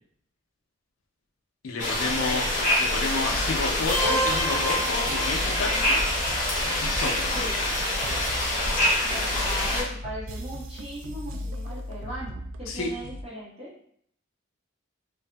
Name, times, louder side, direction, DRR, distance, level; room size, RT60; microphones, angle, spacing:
voice 1, 1.6-2.5 2.8-6.0 6.8-7.3 12.7-12.9, left 3 dB, 75° left, 0 dB, 0.5 m, -30 dB
sound 1, 1.8-9.8, left 1 dB, 40° left, 0.7 m, -26 dB
sound 2, 3.3-13.2, equal, 70° right, 0.3 m, -37 dB
sound 3, 3.9-5.8, right 1 dB, 5° right, 1.1 m, -29 dB
voice 2, 9.4-13.7, equal, 30° right, -8 dB, 1.3 m, -38 dB
2.6 x 2.6 x 2.2 m, 0.64 s
head